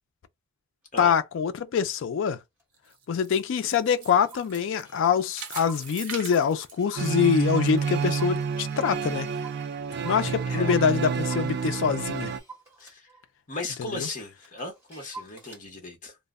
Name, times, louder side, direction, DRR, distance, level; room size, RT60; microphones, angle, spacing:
voice 1, 1.0-2.4 3.1-9.3 10.0-12.3 13.9-14.1, left 7 dB, 55° left, 0.3 m, -25 dB
Clock, 1.1-1.2 1.8-2.0 2.6-2.7 2.9-3.0 3.4-3.5 3.8-11.8 12.2-15.6, right 3 dB, 10° right, 1.1 m, -49 dB
sound 1, 2.7-7.7 8.1-8.2 8.8-8.9, right 6 dB, 80° right, 0.7 m, -42 dB
sound 2, 7.0-12.4, right 6 dB, 50° right, 0.3 m, -29 dB
voice 2, 10.5-10.9 12.8-13.1 13.5-16.2, left 2 dB, 35° left, 0.7 m, -37 dB
2.1 x 2.0 x 3.4 m
head